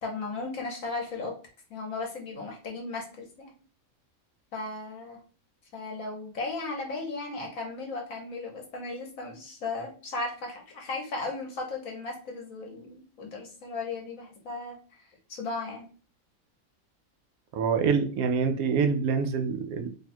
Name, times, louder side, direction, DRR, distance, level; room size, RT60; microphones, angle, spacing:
voice 1, 0.0-1.3 1.7-3.5 4.5-5.2 5.7-15.0 15.3-15.9, left 3 dB, 70° left, 0 dB, 1.5 m, -36 dB
voice 2, 17.5-19.9, right 6 dB, 90° right, 6 dB, 1.1 m, -26 dB
3.3 x 2.3 x 4.2 m, 0.39 s
omnidirectional pair, 1.5 m